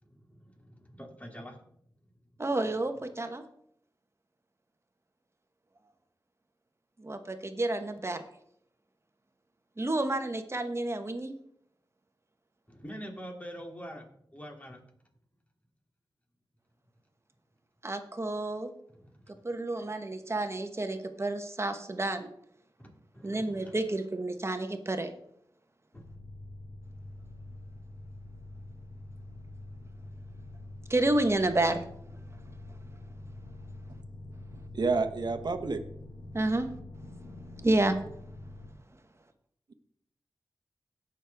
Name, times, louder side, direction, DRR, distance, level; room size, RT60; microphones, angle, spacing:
voice 1, 0.0-1.6 12.7-14.8 18.9-19.3 22.8-23.7 25.9-26.0, equal, 15° left, 1 dB, 2.6 m, -45 dB
voice 2, 2.4-3.4 7.0-8.2 9.8-11.3 17.8-18.7 19.4-22.3 23.2-25.1 30.9-31.9 36.3-36.7 37.6-38.0, right 2 dB, 35° right, 7 dB, 1.2 m, -30 dB
sound 1, 25.9-38.7, left 2 dB, 85° left, 1.7 m, -46 dB
voice 3, 34.7-35.8, right 4 dB, 60° right, 7 dB, 1.1 m, -29 dB
17.5 x 6.3 x 3.5 m, 0.70 s
cardioid pair, 55°, 8 cm